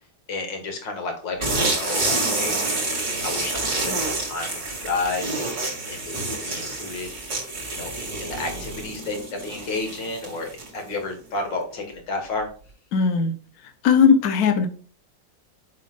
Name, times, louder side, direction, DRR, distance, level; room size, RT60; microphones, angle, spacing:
voice 1, 0.3-2.9 3.2-3.6 3.8-6.2 6.4-7.1 7.7-7.9 8.2-12.5, left 3 dB, 90° left, 3 dB, 2.3 m, -31 dB
sound 1, 1.4-10.9, right 2 dB, 80° right, 3.3 m, -28 dB
voice 2, 12.9-13.3 13.6-14.7, left 6 dB, 60° left, 7 dB, 1.2 m, -18 dB
7.5 x 5.7 x 2.4 m, 0.41 s
omnidirectional pair, 1.9 m